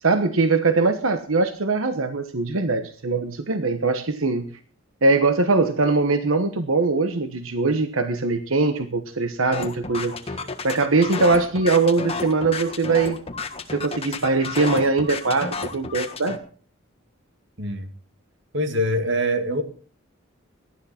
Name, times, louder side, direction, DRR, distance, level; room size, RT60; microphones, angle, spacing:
voice 1, 0.0-4.5 5.0-10.4 10.6-13.2 13.7-16.4, right 3 dB, 90° right, 9 dB, 1.1 m, -21 dB
sound 1, 9.5-16.4, left 4 dB, 30° left, 1.5 m, -31 dB
voice 2, 17.6-17.9 18.5-19.6, equal, 60° right, 7 dB, 2.2 m, -24 dB
18.5 x 12.5 x 4.3 m, 0.42 s
head